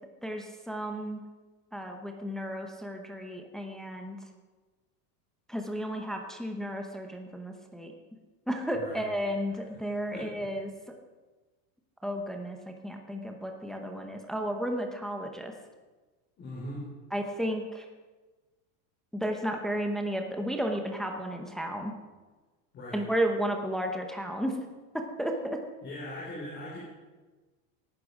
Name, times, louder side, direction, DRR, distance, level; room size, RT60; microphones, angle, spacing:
voice 1, 0.2-1.2 1.7-4.2 5.5-7.9 8.5-10.7 12.0-15.5 17.1-17.9 19.1-21.9 22.9-24.6 24.9-25.6, equal, ahead, 3 dB, 0.8 m, -33 dB
voice 2, 10.1-10.5 16.4-16.8 22.7-23.0 25.8-26.8, left 1 dB, 25° left, -6 dB, 4.5 m, -40 dB
18.0 x 11.5 x 4.9 m, 1.3 s
supercardioid pair, 175°, 45 cm